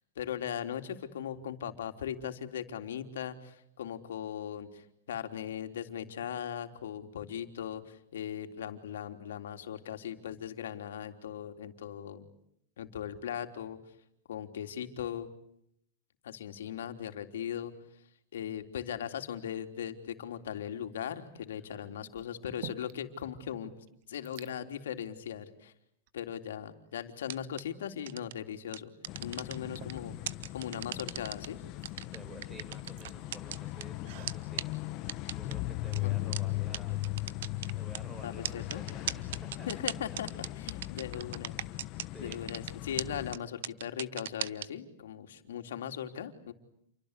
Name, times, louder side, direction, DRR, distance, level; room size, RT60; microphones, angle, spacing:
voice 1, 0.2-12.3 12.8-13.8 14.3-15.3 16.2-17.7 18.3-23.7 24.1-25.7 26.1-28.9 29.2-30.2 30.5-31.6 36.0-36.4 38.2-38.8 39.7-41.5 42.2-46.5, left 9 dB, 90° left, 6 dB, 3.5 m, -39 dB
sound 1, 20.9-21.3 22.1-23.2 23.5-23.6 23.8-24.5 25.3-25.5 26.1-27.0 28.7-28.8 29.4-34.5, right 14 dB, 45° right, 1.2 m, -52 dB
voice 2, 21.6-22.0 32.1-34.7 35.4-37.1 37.7-39.7 40.1-40.5 41.1-41.6 42.1-42.5, right 1 dB, 5° right, 9 dB, 4.7 m, -51 dB
sound 2, 27.2-27.6 28.1-28.3 28.7-29.9 30.3-31.5 31.8-33.8 34.3-34.4 34.6-34.7 35.1-35.5 35.9-36.0 36.3-36.4 36.7-36.8 37.0-38.0 38.4-42.1 42.3-42.7 43.0-43.1 43.3-43.4 43.6-44.7, right 12 dB, 65° right, 1.0 m, -36 dB
sound 3, 29.1-43.4, left 17 dB, 35° left, 1.1 m, -38 dB
29.0 x 24.0 x 8.3 m, 0.73 s
supercardioid pair, 165°, 0 cm